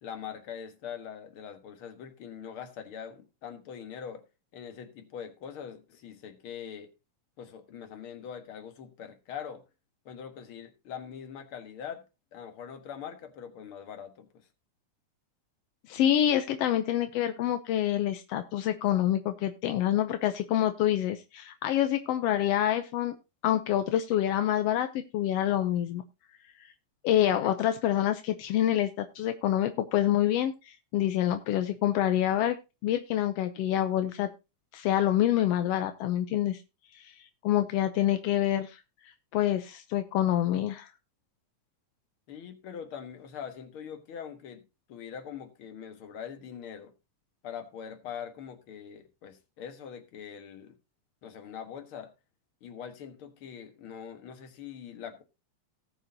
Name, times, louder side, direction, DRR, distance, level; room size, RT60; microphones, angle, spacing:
voice 1, 0.0-4.2 4.5-6.9 7.4-9.6 10.1-12.1 12.3-14.5 42.3-44.6 44.9-46.9 47.4-50.8 51.2-52.1 52.6-55.2, left 8 dB, 50° left, 2.0 m, -42 dB
voice 2, 15.9-23.1 23.4-26.0 27.0-32.6 32.8-34.3 34.7-36.6 36.9-37.1 37.4-38.8 39.3-40.9, left 11 dB, 75° left, 1.5 m, -27 dB
18.5 x 6.6 x 2.8 m
omnidirectional pair, 3.6 m